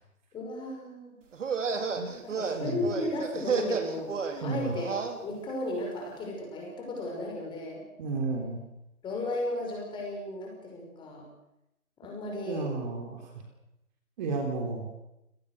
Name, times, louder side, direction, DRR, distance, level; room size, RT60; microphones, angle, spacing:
voice 1, 0.3-1.2 2.2-7.8 9.0-11.3 12.0-12.7, left 1 dB, 10° left, 0 dB, 6.2 m, -35 dB
sound 1, 1.3-5.2, right 5 dB, 55° right, 3.8 m, -32 dB
voice 2, 4.4-4.7 8.0-8.6 12.4-13.2 14.2-14.9, right 3 dB, 30° right, 3 dB, 3.5 m, -32 dB
27.5 x 19.0 x 6.6 m, 0.86 s
hypercardioid pair, 150°, 44 cm